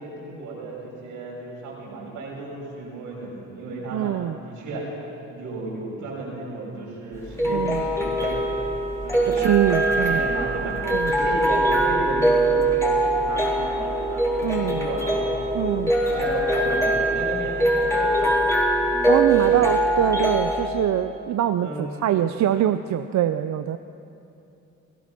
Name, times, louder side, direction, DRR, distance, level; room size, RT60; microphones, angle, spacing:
voice 1, 0.0-4.1 4.4-4.9 5.3-8.4 9.0-9.5 9.8-10.8 11.1-14.2 14.6-15.3 15.7-18.5 19.2-19.6 21.6-22.0, right 3 dB, 90° right, -3 dB, 6.6 m, -33 dB
voice 2, 3.9-4.4 7.5-7.8 9.3-10.2 10.8-11.1 14.4-14.9 15.5-15.9 19.1-23.8, right 11 dB, 65° right, 10 dB, 0.7 m, -24 dB
sound 1, 7.1-20.7, right 1 dB, 10° left, 4.0 m, -22 dB
28.0 x 16.5 x 6.1 m, 2.8 s
cardioid pair, 90°, 30 cm